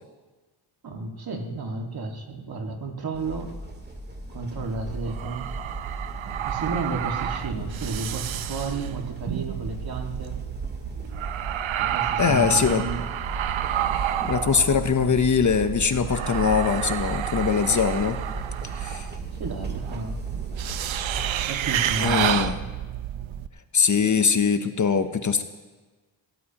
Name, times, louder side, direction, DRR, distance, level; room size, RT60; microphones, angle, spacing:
voice 1, 0.8-3.5 4.3-5.5 6.5-10.4 11.8-13.1 19.4-20.2 21.4-22.5, right 3 dB, 50° right, 3 dB, 2.0 m, -32 dB
sound 1, 3.1-21.3, equal, 20° right, 2.1 m, -38 dB
sound 2, 4.6-23.5, right 11 dB, 80° right, 0.7 m, -30 dB
voice 2, 12.2-12.8 14.2-18.2 18.7-19.1 22.0-22.6 23.7-25.4, left 6 dB, 40° left, 9 dB, 0.8 m, -22 dB
21.5 x 17.5 x 2.9 m, 1.3 s
cardioid pair, 100°, 46 cm